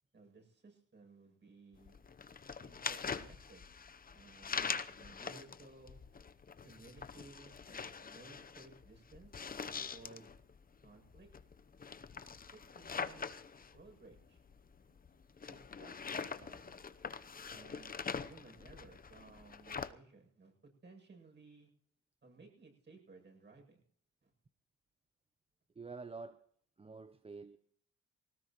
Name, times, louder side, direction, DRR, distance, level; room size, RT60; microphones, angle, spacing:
voice 1, 0.1-2.0 2.6-3.6 4.1-6.0 6.6-10.3 10.8-11.3 12.5-13.3 13.7-14.4 14.9-15.0 15.4-16.8 17.5-17.9 18.2-20.5 20.8-21.7 22.2-23.8 24.2-24.3, right 3 dB, 35° right, 8.0 m, -58 dB
sound 1, 1.7-19.9, left 5 dB, 30° left, 0.9 m, -44 dB
voice 2, 25.8-26.4 26.8-27.6, right 4 dB, 20° right, 0.7 m, -48 dB
20.0 x 18.5 x 3.1 m
cardioid pair, 90°, 30 cm